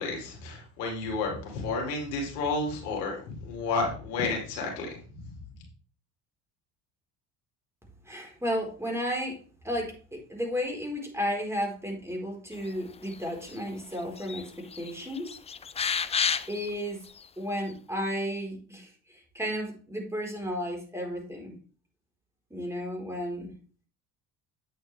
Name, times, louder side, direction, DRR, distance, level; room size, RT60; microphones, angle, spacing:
voice 1, 0.0-5.0, left 3 dB, 85° left, 0 dB, 2.7 m, -31 dB
voice 2, 8.1-9.4 9.6-14.5 14.7-15.3 16.5-17.0 17.4-21.5 22.5-23.5, equal, 5° right, 0 dB, 4.6 m, -33 dB
sound 1, 13.1-13.7 14.0-14.4 14.7-16.7 17.2-17.3, left 6 dB, 15° left, 0.3 m, -30 dB
8.3 x 7.8 x 3.5 m, 0.40 s
hypercardioid pair, 70°, 47 cm